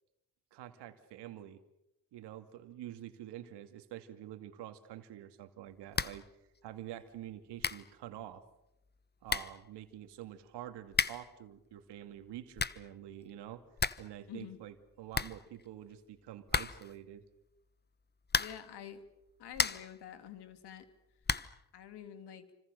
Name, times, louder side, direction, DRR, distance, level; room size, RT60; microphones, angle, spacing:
voice 1, 0.5-1.6 2.1-6.2 6.6-8.4 9.2-13.6 14.0-17.2, right 12 dB, 90° right, 8 dB, 2.4 m, -47 dB
sound 1, 5.9-6.3 6.6-6.7 7.3-7.4 7.6-7.9 8.9-9.0 9.3-9.6 10.9-11.4 12.3-12.9 13.3-13.4 13.6-14.1 14.4-14.5 14.8-14.9 15.1-15.9 16.5-17.0 18.2-18.7 19.2-20.0 21.2-21.6, left 5 dB, 25° left, 1.1 m, -34 dB
voice 2, 18.4-19.0 19.4-20.9 21.7-22.5, left 9 dB, 80° left, 9 dB, 3.1 m, -47 dB
29.5 x 26.0 x 6.7 m, 0.89 s
cardioid pair, 70°, 40 cm